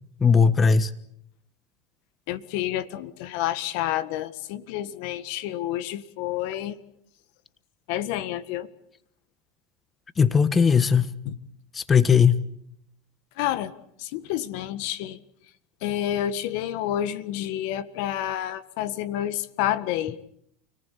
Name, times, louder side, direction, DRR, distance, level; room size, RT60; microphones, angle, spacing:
voice 1, 0.2-0.9 10.2-11.1 11.7-12.4, left 6 dB, 25° left, 14 dB, 1.4 m, -18 dB
voice 2, 2.3-6.8 7.9-8.7 11.2-11.4 13.4-13.7 14.0-15.2 15.8-20.2, left 12 dB, 65° left, 14 dB, 1.7 m, -29 dB
30.0 x 18.5 x 8.5 m, 0.72 s
hypercardioid pair, 100°, 0 cm